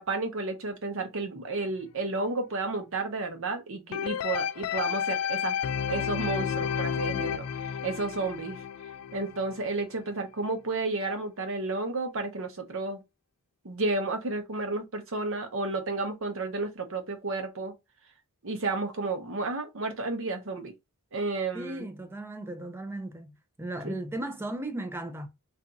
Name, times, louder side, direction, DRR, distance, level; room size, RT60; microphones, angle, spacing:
voice 1, 0.0-5.5 5.9-7.4 7.8-8.6 9.1-13.0 13.6-17.7 18.4-20.7 21.1-21.9 23.8-24.0, right 3 dB, 60° right, 0.8 m, -32 dB
sound 1, 3.9-9.9 10.4-10.5, left 8 dB, 85° left, 0.3 m, -32 dB
voice 2, 21.5-23.3 23.6-25.3, right 1 dB, 10° right, 0.4 m, -36 dB
2.6 x 2.4 x 3.8 m
head